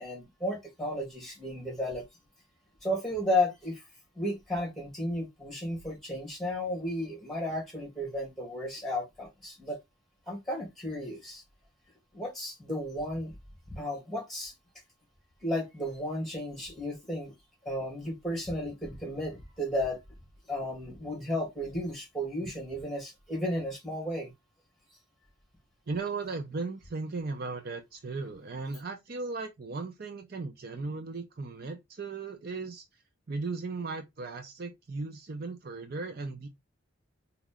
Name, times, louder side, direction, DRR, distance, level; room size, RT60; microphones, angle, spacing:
voice 1, 0.0-2.0 2.8-3.8 4.2-9.8 10.3-11.4 12.1-13.3 13.8-14.5 15.4-17.3 17.6-20.0 20.5-24.3, left 1 dB, ahead, 2.3 m, -33 dB
voice 2, 25.9-32.9 33.3-36.5, right 3 dB, 55° right, 0.6 m, -37 dB
4.0 x 2.9 x 3.7 m
head